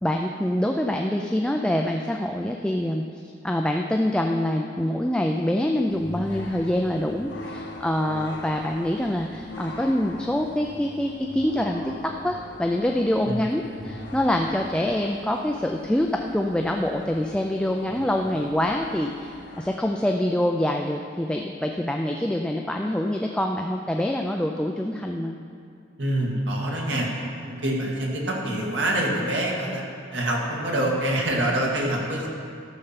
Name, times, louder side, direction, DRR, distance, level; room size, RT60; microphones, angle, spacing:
voice 1, 0.0-25.4, left 1 dB, 5° left, 2 dB, 0.4 m, -25 dB
sound 1, 5.9-19.7, left 1 dB, 70° left, 1.2 m, -42 dB
voice 2, 26.0-27.1 27.4-29.8 30.1-32.3, right 1 dB, 80° right, -2 dB, 2.0 m, -25 dB
13.0 x 6.7 x 5.8 m, 2.4 s
head